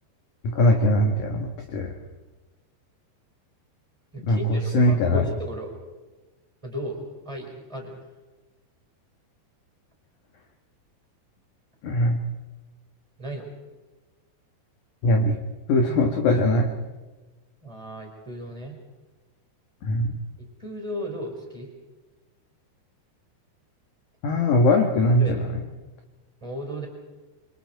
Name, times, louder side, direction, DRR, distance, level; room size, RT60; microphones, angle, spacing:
voice 1, 0.4-1.9 4.2-5.3 11.8-12.2 15.0-15.4 15.7-16.7 19.8-20.2 24.2-25.6, left 1 dB, 60° left, 3 dB, 2.2 m, -21 dB
voice 2, 4.1-5.7 6.6-8.0 13.2-13.5 17.6-18.8 20.4-21.7 24.3-24.4 25.2-25.4 26.4-26.9, equal, 5° right, 2 dB, 4.5 m, -35 dB
28.5 x 25.0 x 4.6 m, 1.2 s
omnidirectional pair, 5.1 m